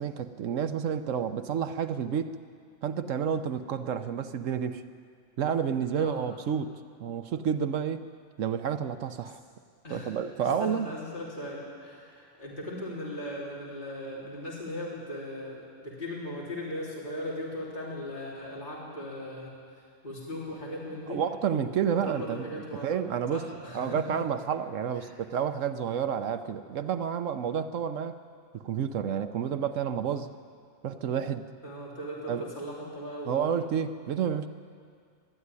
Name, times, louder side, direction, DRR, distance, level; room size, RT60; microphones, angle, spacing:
voice 1, 0.0-2.4 2.8-4.8 5.4-8.0 8.4-9.4 9.9-10.9 21.1-22.5 22.8-23.4 23.7-28.2 28.5-30.3 30.8-31.5 32.3-32.4 33.3-34.5, right 7 dB, 75° right, 10 dB, 1.1 m, -30 dB
voice 2, 5.9-6.3 9.8-21.2 21.9-22.9 23.3-24.2 24.9-25.2 31.6-33.7, left 1 dB, 35° left, -5 dB, 3.6 m, -38 dB
22.0 x 13.0 x 9.7 m, 2.1 s
omnidirectional pair, 1.4 m